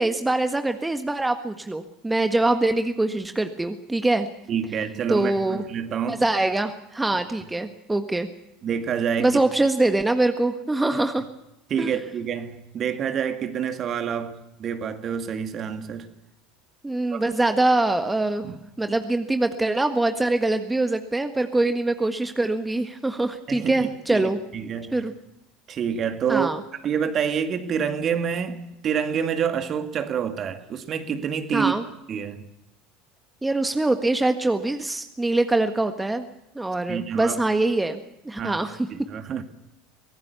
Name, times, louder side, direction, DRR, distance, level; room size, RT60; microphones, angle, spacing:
voice 1, 0.0-4.3 5.1-5.6 6.1-8.3 9.2-11.3 11.8-11.9 16.8-18.5 18.8-24.4 24.9-25.1 26.3-26.6 31.5-31.8 33.4-36.2 36.5-38.8, right 2 dB, 10° right, 1.6 m, -23 dB
voice 2, 4.5-6.2 8.6-9.4 11.7-16.1 17.1-17.2 18.4-18.6 23.5-25.0 25.7-26.5 26.8-31.7 32.1-32.5 36.9-37.4 38.4-38.6 38.9-39.4, right 7 dB, 40° right, 2.2 m, -27 dB
24.5 x 18.0 x 7.1 m
figure-of-eight pair, 75°, 0 cm